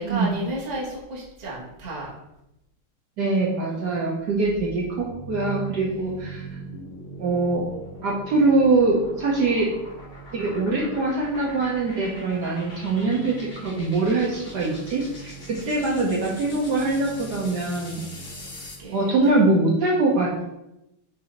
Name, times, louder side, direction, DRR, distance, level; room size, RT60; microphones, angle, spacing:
voice 1, 0.0-2.1 3.7-4.4 5.7-6.1 15.8-16.0 18.6-19.4, right 1 dB, 25° right, -4 dB, 1.0 m, -34 dB
voice 2, 3.2-6.6 7.2-7.7 8.0-9.7 10.3-18.0 18.9-20.4, right 3 dB, 60° right, -3 dB, 1.3 m, -23 dB
sound 1, 4.2-18.9, right 2 dB, 50° left, 0.5 m, -40 dB
6.9 x 2.7 x 5.2 m, 0.88 s
omnidirectional pair, 2.4 m